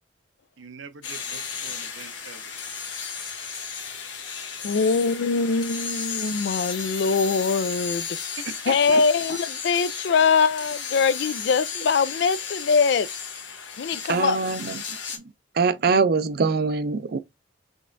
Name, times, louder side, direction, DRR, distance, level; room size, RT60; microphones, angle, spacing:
voice 1, 0.6-2.5 5.5-5.7 8.4-9.0, right 5 dB, 85° right, 0.7 m, -41 dB
sound 1, 1.0-15.2, left 6 dB, 80° left, 1.3 m, -34 dB
voice 2, 4.6-8.1 8.7-13.1 13.8-14.4, left 5 dB, 60° left, 0.4 m, -22 dB
voice 3, 14.1-14.8 15.6-17.2, right 4 dB, 55° right, 0.4 m, -23 dB
5.3 x 3.3 x 2.5 m
head